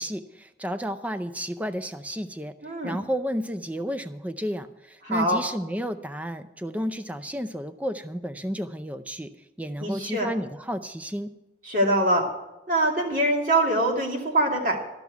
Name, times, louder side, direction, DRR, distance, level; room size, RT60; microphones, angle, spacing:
voice 1, 0.0-2.5 2.8-9.3 9.6-11.3, equal, 10° right, 10 dB, 0.5 m, -32 dB
voice 2, 2.6-3.0 5.0-5.4 9.8-10.3 11.6-12.3 12.7-14.8, right 1 dB, 45° right, 0 dB, 2.5 m, -23 dB
13.5 x 6.0 x 9.3 m, 0.96 s
head